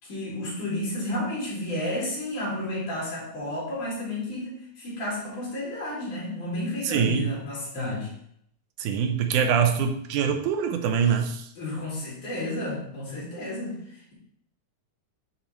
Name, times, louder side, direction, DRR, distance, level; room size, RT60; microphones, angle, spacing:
voice 1, 0.0-8.1 11.6-14.1, left 1 dB, 70° left, -6 dB, 4.9 m, -32 dB
voice 2, 6.8-7.4 8.8-11.5, right 7 dB, 80° right, 5 dB, 2.2 m, -24 dB
10.5 x 4.1 x 4.2 m, 0.69 s
omnidirectional pair, 3.6 m